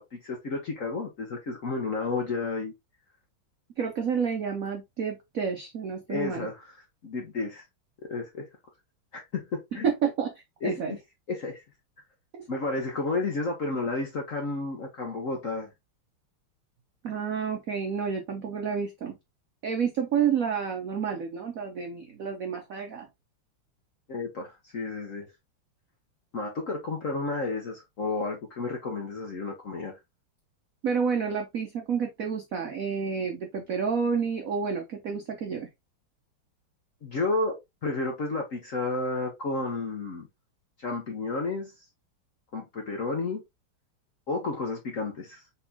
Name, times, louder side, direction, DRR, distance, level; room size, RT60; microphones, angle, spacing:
voice 1, 0.0-2.7 6.1-6.8 7.0-7.7 8.0-8.5 9.1-9.8 10.6-11.0 11.3-11.6 12.5-15.7 24.1-25.3 26.3-30.0 37.0-37.6 37.8-40.3 40.8-41.7 42.5-43.4 44.3-45.4, left 3 dB, 55° left, 0.9 m, -31 dB
voice 2, 3.8-6.5 9.8-10.3 10.6-11.0 12.3-12.4 17.0-19.2 19.6-23.1 30.8-35.7, right 6 dB, 70° right, 0.8 m, -29 dB
4.1 x 4.0 x 2.7 m
omnidirectional pair, 2.4 m